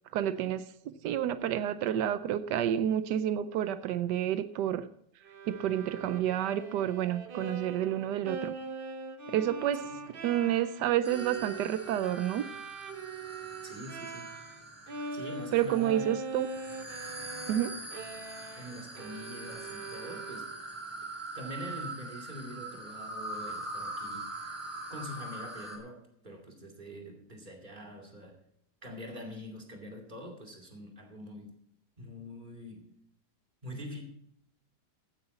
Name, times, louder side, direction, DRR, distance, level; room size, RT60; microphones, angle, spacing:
voice 1, 0.1-0.7 1.0-4.9 5.5-8.5 9.3-9.9 10.2-12.5 15.5-16.5 17.5-17.7, right 11 dB, 90° right, 12 dB, 1.3 m, -29 dB
Bowed string instrument, 5.2-14.6 14.9-20.7, right 4 dB, 45° right, 0.8 m, -42 dB
sound 1, 11.0-25.8, right 2 dB, 10° right, 2.5 m, -43 dB
voice 2, 13.6-14.3 15.1-16.2 18.6-20.5 21.3-24.6 24.9-28.4 28.8-31.5 32.0-32.9 33.6-34.0, equal, 25° right, 1 dB, 2.7 m, -44 dB
16.0 x 9.4 x 4.1 m, 0.71 s
omnidirectional pair, 1.8 m